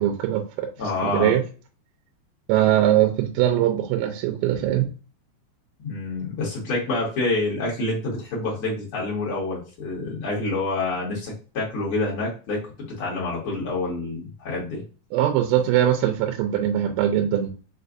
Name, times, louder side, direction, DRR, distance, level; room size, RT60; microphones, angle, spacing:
voice 1, 0.0-0.7 1.0-1.4 2.5-4.9 15.1-17.5, right 11 dB, 90° right, 4 dB, 2.9 m, -21 dB
voice 2, 0.8-1.3 5.8-12.6 13.0-14.8, left 2 dB, 55° left, -4 dB, 1.5 m, -27 dB
6.6 x 2.5 x 2.5 m, 0.35 s
omnidirectional pair, 5.2 m